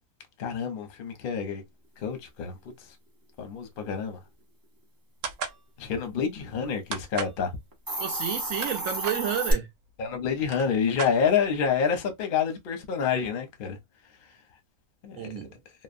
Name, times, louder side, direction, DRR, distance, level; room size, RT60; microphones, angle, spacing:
voice 1, 0.4-1.6 2.0-2.7 3.4-4.2 5.8-7.6 10.0-13.8 15.0-15.4, left 6 dB, 50° left, 0.7 m, -28 dB
sound 1, 5.2-5.6 6.9-7.4 8.3-9.2 10.0-10.1 10.4-11.6, right 6 dB, 85° right, 1.2 m, -35 dB
Hiss, 7.7-9.5, right 1 dB, 25° right, 0.4 m, -31 dB
voice 2, 8.0-9.7 15.2-15.5, right 9 dB, 70° right, 0.9 m, -31 dB
2.9 x 2.0 x 2.5 m
omnidirectional pair, 1.6 m